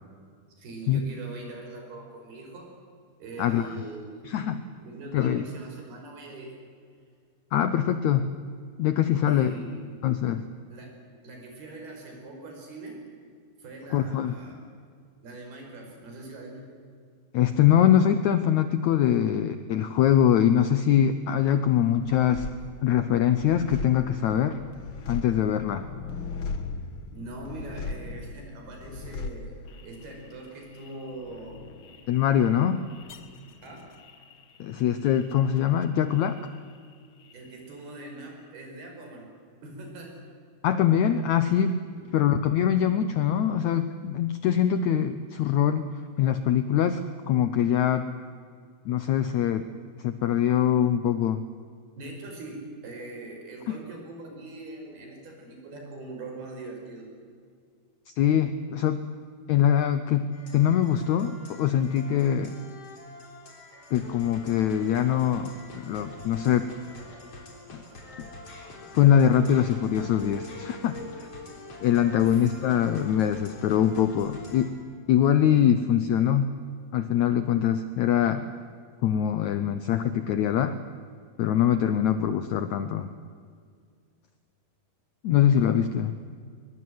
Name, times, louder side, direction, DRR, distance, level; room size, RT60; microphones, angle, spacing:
voice 1, 0.6-2.7 3.2-4.2 4.8-6.5 9.3-10.2 10.7-10.9 11.2-13.0 13.6-14.6 15.2-16.8 27.1-29.6 29.8-31.6 32.0-32.1 33.6-34.0 37.3-39.3 39.6-40.3 42.0-42.2 52.0-57.1 72.2-72.5, right 2 dB, 85° right, 2 dB, 7.0 m, -42 dB
voice 2, 3.4-3.7 4.2-4.6 5.1-5.5 7.5-8.3 8.8-9.6 10.0-10.5 13.9-14.3 17.3-22.4 22.8-24.6 25.1-25.9 32.1-32.8 34.6-36.4 40.6-41.8 42.1-45.9 46.2-48.1 48.8-49.6 50.0-51.4 58.1-59.0 59.5-62.5 63.9-66.7 67.7-67.8 68.2-68.3 68.9-71.0 71.8-74.7 75.1-76.5 76.9-78.4 79.0-80.8 81.4-83.1 85.2-86.2, left 9 dB, 80° left, 11 dB, 1.6 m, -23 dB
sound 1, 22.0-36.9 37.2-38.0, left 4 dB, 60° left, 1.3 m, -40 dB
sound 2, 60.3-74.7, left 2 dB, 40° left, 4.6 m, -44 dB
22.5 x 21.0 x 9.5 m, 2.1 s
omnidirectional pair, 4.4 m